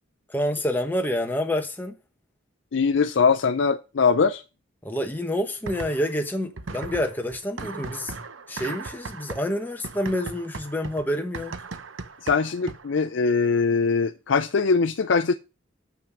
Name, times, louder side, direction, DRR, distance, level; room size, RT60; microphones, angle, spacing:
voice 1, 0.3-2.0 4.8-8.2 8.5-11.6, left 1 dB, 10° left, 1.1 m, -28 dB
voice 2, 2.7-4.4 12.2-15.3, left 5 dB, 70° left, 0.5 m, -22 dB
sound 1, 5.7-6.3 6.6-13.0, right 3 dB, 80° right, 0.9 m, -38 dB
7.2 x 6.1 x 5.8 m
head